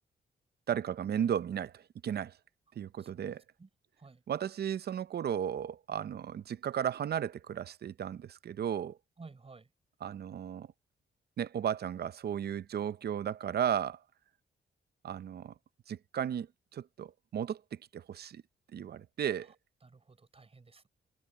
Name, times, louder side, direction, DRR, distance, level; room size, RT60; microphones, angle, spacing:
voice 1, 0.7-2.4 2.8-3.4 4.3-9.0 10.0-10.7 11.4-14.0 15.0-15.5 15.9-18.4 18.7-19.5, right 9 dB, 60° right, 0.7 m, -35 dB
voice 2, 9.2-9.7 19.8-20.9, right 4 dB, 30° right, 5.1 m, -54 dB
cardioid pair, 85°, 19 cm